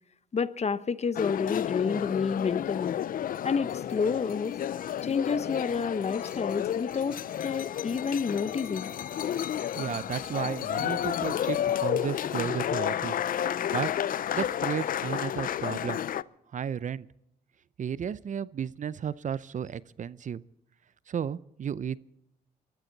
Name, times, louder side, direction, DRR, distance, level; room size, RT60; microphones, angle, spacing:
voice 1, 0.3-3.0 3.4-4.6 5.0-8.9, left 5 dB, 40° left, 0.9 m, -29 dB
sound 1, 1.1-16.2, left 10 dB, 60° left, 0.5 m, -31 dB
voice 2, 9.8-13.2 13.5-13.9 14.3-16.0 16.5-17.1 17.8-20.4 21.1-22.0, right 8 dB, 50° right, 0.6 m, -33 dB
23.0 x 14.0 x 4.1 m
cardioid pair, 65°, 17 cm